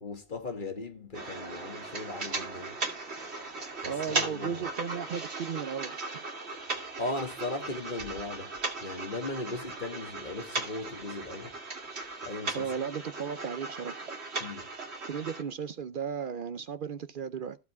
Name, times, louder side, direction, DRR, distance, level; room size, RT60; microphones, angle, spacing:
voice 1, 0.0-2.8 3.8-4.7 7.0-11.6 12.2-12.8 14.4-14.7, left 2 dB, 50° left, 1.7 m, -38 dB
sound 1, 1.1-15.4, right 3 dB, 80° right, 2.2 m, -37 dB
voice 2, 3.8-5.9 12.5-14.0 15.1-17.6, right 7 dB, 60° right, 0.7 m, -35 dB
14.5 x 4.8 x 4.5 m
omnidirectional pair, 1.1 m